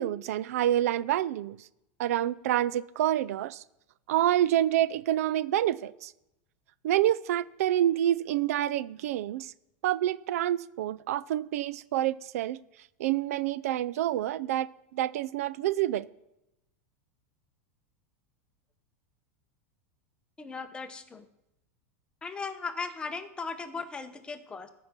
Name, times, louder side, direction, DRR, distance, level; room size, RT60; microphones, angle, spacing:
voice 1, 0.0-1.6 2.0-3.6 4.1-6.1 6.8-9.5 9.8-12.6 13.0-16.1, right 12 dB, 75° right, 19 dB, 0.4 m, -27 dB
voice 2, 20.4-21.3 22.2-24.7, left 4 dB, 10° left, 9 dB, 0.8 m, -37 dB
14.0 x 5.7 x 6.7 m, 0.87 s
supercardioid pair, 150°, 8 cm